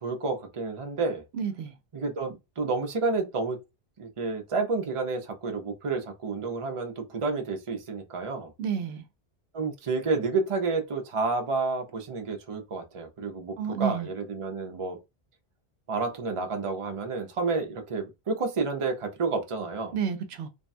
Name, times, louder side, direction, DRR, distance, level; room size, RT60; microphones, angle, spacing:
voice 1, 0.0-1.2 1.9-3.6 4.0-8.5 9.5-15.0 15.9-19.9, right 4 dB, 35° right, 0.6 m, -30 dB
voice 2, 1.3-1.7 8.6-9.0 13.6-14.1 19.9-20.5, right 7 dB, 75° right, 0.9 m, -30 dB
3.4 x 2.2 x 2.5 m
omnidirectional pair, 1.1 m